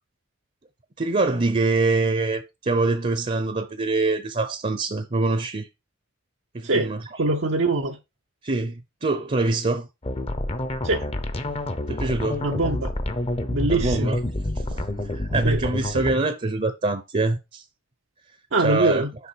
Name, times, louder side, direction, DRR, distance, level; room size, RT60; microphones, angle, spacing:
voice 1, 1.0-5.7 6.5-7.0 8.4-9.9 11.9-12.4 13.7-14.2 14.5-17.6 18.6-19.0, right 3 dB, 35° right, 0.7 m, -24 dB
voice 2, 7.2-8.0 10.8-11.1 12.4-12.9 13.5-14.2 15.4-15.6 18.5-19.1, right 2 dB, 70° right, 0.8 m, -23 dB
sound 1, 10.0-16.2, left 1 dB, 30° left, 0.8 m, -28 dB
7.0 x 5.0 x 4.7 m
head